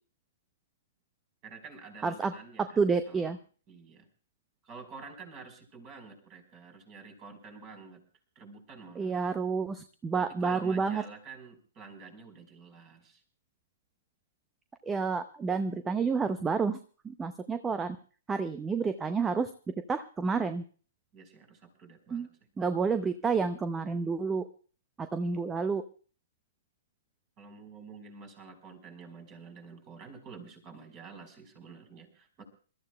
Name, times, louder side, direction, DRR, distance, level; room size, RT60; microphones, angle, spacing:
voice 1, 1.4-3.3 3.7-4.1 4.6-8.0 8.3-9.2 10.4-13.2 21.1-22.3 27.4-32.4, right 4 dB, 30° right, 5 dB, 4.3 m, -49 dB
voice 2, 2.0-2.3 2.8-3.4 9.0-11.0 14.9-16.8 17.0-18.0 18.3-19.5 19.9-20.6 22.1-22.3 22.6-24.4 25.0-25.8, right 5 dB, 10° right, 10 dB, 0.6 m, -29 dB
27.5 x 13.5 x 2.3 m, 0.40 s
figure-of-eight pair, 120°, 0 cm